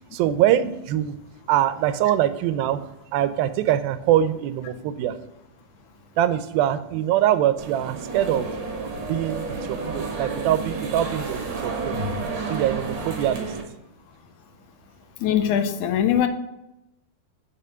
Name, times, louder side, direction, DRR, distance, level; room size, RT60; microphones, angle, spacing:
voice 1, 0.1-1.2 1.5-5.2 6.2-8.5 9.1-12.0 12.5-13.5, right 11 dB, 80° right, 13 dB, 2.4 m, -23 dB
sound 1, 7.6-13.6, right 3 dB, 50° right, 1.7 m, -31 dB
voice 2, 15.2-16.3, left 9 dB, 75° left, 9 dB, 1.8 m, -21 dB
6.8 x 5.5 x 7.3 m, 0.89 s
omnidirectional pair, 4.3 m